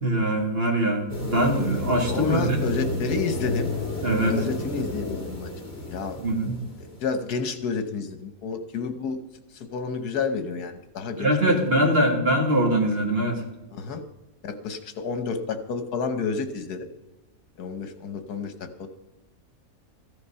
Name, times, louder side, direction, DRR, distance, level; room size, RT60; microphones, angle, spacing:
voice 1, 0.0-2.6 4.0-4.4 6.2-6.6 11.2-13.4, right 1 dB, 40° right, 2 dB, 2.2 m, -23 dB
sound 1, 1.1-7.0, left 2 dB, 40° left, 2.9 m, -31 dB
voice 2, 2.1-3.7 4.2-5.5 5.9-6.2 7.0-9.2 9.7-12.0 13.7-14.0 14.4-16.9 17.6-18.9, left 5 dB, 80° left, 9 dB, 1.7 m, -30 dB
14.5 x 10.5 x 5.6 m, 1.1 s
omnidirectional pair, 1.7 m